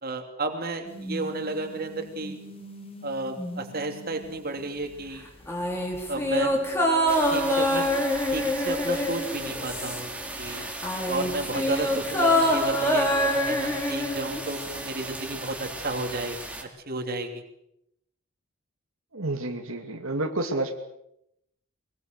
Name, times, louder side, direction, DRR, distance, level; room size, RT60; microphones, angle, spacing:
voice 1, 0.0-2.4 3.0-5.3 6.1-6.5 7.3-7.9 8.3-10.7 11.1-17.4, right 2 dB, 45° right, 4 dB, 3.0 m, -32 dB
sound 1, 0.8-5.2 5.4-5.5 8.1-8.2, equal, 25° left, 3.3 m, -41 dB
sound 2, 5.5-10.2 10.5-14.8 15.1-15.2, left 1 dB, 10° left, 3.9 m, -25 dB
sound 3, 7.1-16.6, right 2 dB, 5° right, 2.9 m, -37 dB
voice 2, 19.1-20.8, right 2 dB, 80° right, 3 dB, 2.5 m, -29 dB
22.5 x 22.5 x 6.8 m, 0.79 s
head